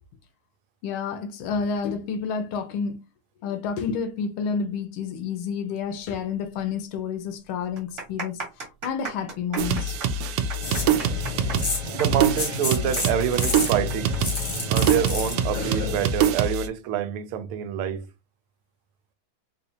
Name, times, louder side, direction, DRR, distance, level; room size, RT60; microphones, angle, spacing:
voice 1, 0.8-2.9 3.4-8.4 8.8-10.0, left 6 dB, 80° left, 1.5 m, -29 dB
sound 1, 6.6-6.7 6.9-7.0 7.6-14.9 15.2-15.3 16.0-16.3, right 3 dB, 40° right, 1.4 m, -36 dB
sound 2, 9.6-16.7, right 6 dB, 70° right, 1.1 m, -25 dB
sound 3, 10.6-16.1, left 2 dB, 30° left, 0.8 m, -30 dB
voice 2, 11.9-14.2 14.7-18.0, right 9 dB, 90° right, 1.5 m, -27 dB
4.1 x 2.6 x 2.8 m
omnidirectional pair, 2.3 m